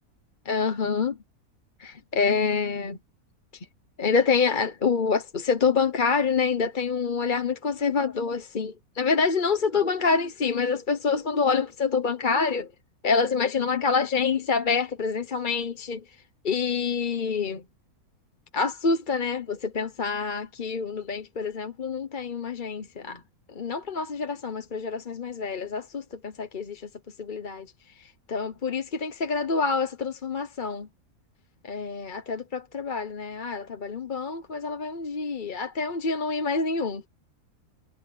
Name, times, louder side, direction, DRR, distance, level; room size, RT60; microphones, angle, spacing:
voice 1, 0.4-1.2 1.8-3.0 4.0-12.7 13.0-16.0 16.4-17.6 18.5-23.2 23.5-26.9 27.2-27.7 28.3-30.9 31.6-37.0, left 5 dB, 35° left, 1.0 m, -27 dB
omnidirectional pair, 1.6 m